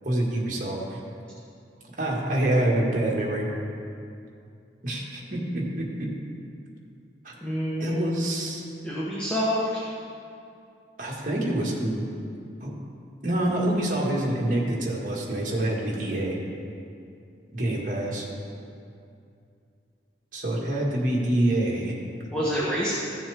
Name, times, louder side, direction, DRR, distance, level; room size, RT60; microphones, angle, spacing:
voice 1, 0.0-1.0 2.0-3.4 4.8-6.1 7.2-7.3 7.8-8.7 11.0-12.0 12.6-12.7 13.2-16.4 17.5-18.3 20.3-21.9, right 1 dB, 45° right, -3 dB, 1.8 m, -26 dB
voice 2, 7.4-8.3 8.8-9.9 22.3-22.9, equal, 5° left, -8 dB, 1.2 m, -27 dB
15.5 x 7.2 x 3.5 m, 2.5 s
head